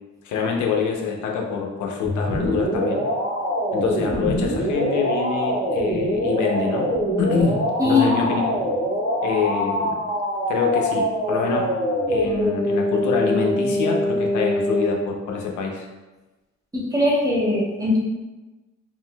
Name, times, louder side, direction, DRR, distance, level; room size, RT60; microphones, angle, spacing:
voice 1, 0.2-3.0 3.7-6.9 7.2-8.4 9.2-9.9 10.5-11.8 12.1-15.9, left 5 dB, 75° left, 1 dB, 0.7 m, -25 dB
sound 1, 2.0-14.9, equal, 45° left, 1.0 m, -24 dB
voice 2, 7.8-8.1 16.7-18.0, left 2 dB, 10° right, -6 dB, 1.0 m, -20 dB
3.6 x 2.6 x 2.2 m, 1.1 s
cardioid pair, 90°, 30 cm